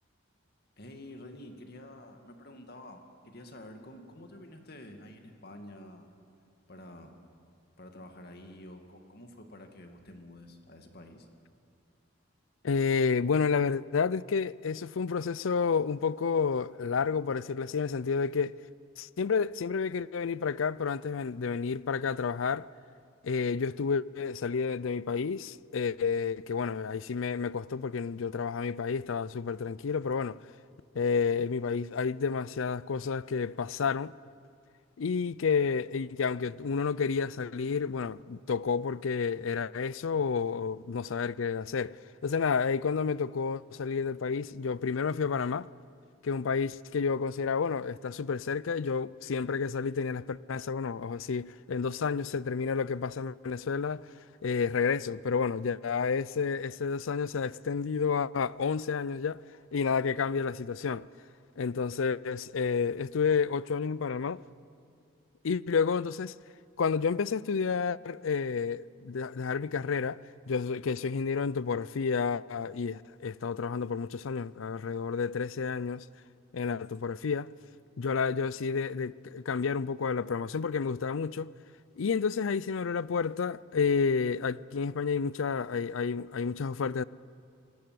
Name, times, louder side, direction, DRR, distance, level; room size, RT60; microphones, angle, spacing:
voice 1, 0.8-6.1 6.7-7.1 7.8-11.3, left 1 dB, 50° left, 2.3 m, -49 dB
voice 2, 12.6-18.5 19.0-22.7 23.2-30.4 30.9-34.1 35.0-42.0 42.2-45.7 46.2-54.0 54.4-59.4 59.7-61.1 61.6-64.4 65.4-66.3 66.8-70.2 70.5-76.1 76.5-77.5 78.0-81.5 82.0-87.0, left 5 dB, 80° left, 0.5 m, -30 dB
26.5 x 19.0 x 7.7 m
head